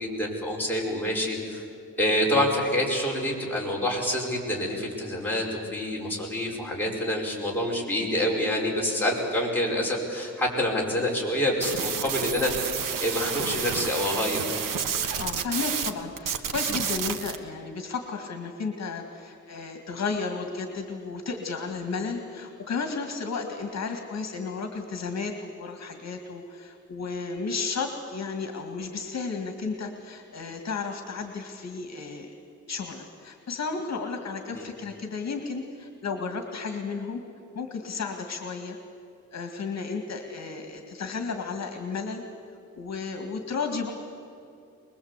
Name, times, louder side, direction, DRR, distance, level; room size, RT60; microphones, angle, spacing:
voice 1, 0.0-1.7 2.0-12.7 13.0-14.4 34.5-34.6, left 1 dB, 5° left, -3 dB, 5.1 m, -27 dB
sound 1, 11.6-15.9 16.2-17.4, right 7 dB, 90° right, 1.3 m, -30 dB
voice 2, 15.1-32.3 32.7-37.2 37.6-38.8 39.3-42.2 42.7-43.9, left 4 dB, 55° left, 5 dB, 2.1 m, -33 dB
23.5 x 21.5 x 8.2 m, 2.6 s
wide cardioid pair, 140°, 32 cm